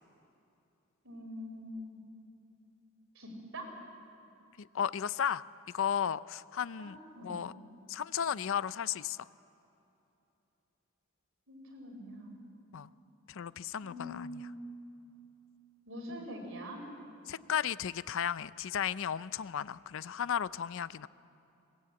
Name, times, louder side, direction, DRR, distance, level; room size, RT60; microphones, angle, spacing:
voice 1, 1.0-2.0 3.1-3.7 6.8-7.4 11.5-12.4 13.8-14.6 15.8-16.8, equal, 60° right, 2 dB, 4.7 m, -44 dB
voice 2, 4.6-5.4 5.7-7.0 7.2-7.5 7.9-9.3 12.7-12.9 13.3-14.4 17.3-21.1, left 8 dB, 60° left, 17 dB, 0.4 m, -34 dB
22.0 x 18.5 x 8.7 m, 2.9 s
head